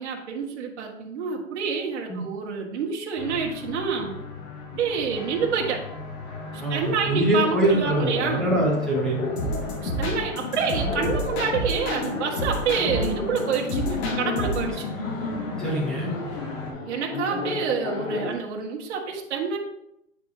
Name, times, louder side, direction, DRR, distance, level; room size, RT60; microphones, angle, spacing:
voice 1, 0.0-4.1 4.7-5.8 6.7-8.5 9.8-14.9 16.8-19.6, right 6 dB, 60° right, 0 dB, 1.6 m, -28 dB
sound 1, 3.2-16.7, left 3 dB, 25° left, 0.9 m, -38 dB
voice 2, 6.6-9.3 15.6-16.1, right 1 dB, ahead, -5 dB, 0.5 m, -24 dB
Laughter, 7.4-18.3, left 4 dB, 75° left, 1.3 m, -32 dB
sound 2, 9.4-12.1 12.4-14.7, equal, 55° left, 1.8 m, -30 dB
9.3 x 4.8 x 2.8 m, 0.82 s
hypercardioid pair, 165°, 39 cm